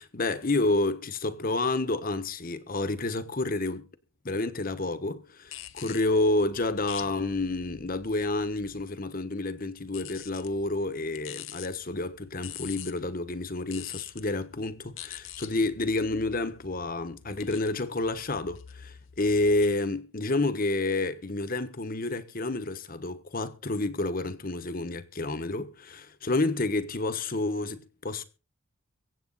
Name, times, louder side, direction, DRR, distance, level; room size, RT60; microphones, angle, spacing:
voice 1, 0.0-3.9 4.2-28.2, left 2 dB, 40° left, 1.3 m, -29 dB
sound 1, 5.5-9.0 9.8-19.7, left 11 dB, 65° left, 0.9 m, -46 dB
24.0 x 8.3 x 4.1 m
head